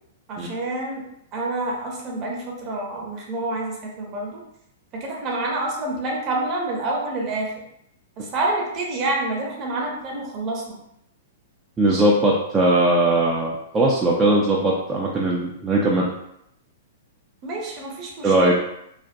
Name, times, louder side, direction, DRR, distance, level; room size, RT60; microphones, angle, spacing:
voice 1, 0.3-1.0 1.3-4.4 5.0-7.5 8.2-10.8 17.4-18.5, right 2 dB, 35° right, -2 dB, 0.8 m, -27 dB
voice 2, 11.8-16.1 18.2-18.5, right 2 dB, 20° right, -4 dB, 0.4 m, -19 dB
2.4 x 2.1 x 2.6 m, 0.77 s
hypercardioid pair, 120°, 0 cm